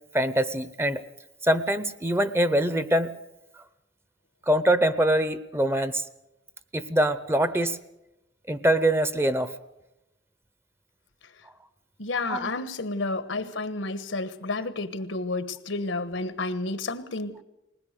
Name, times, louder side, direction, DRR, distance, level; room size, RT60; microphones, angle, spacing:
voice 1, 0.1-1.0 1.4-3.1 4.5-6.0 6.7-7.8 8.5-9.5 12.3-12.5, right 1 dB, 15° right, 0.7 m, -23 dB
voice 2, 12.0-17.4, left 3 dB, 85° left, 1.3 m, -31 dB
20.0 x 19.5 x 6.7 m
head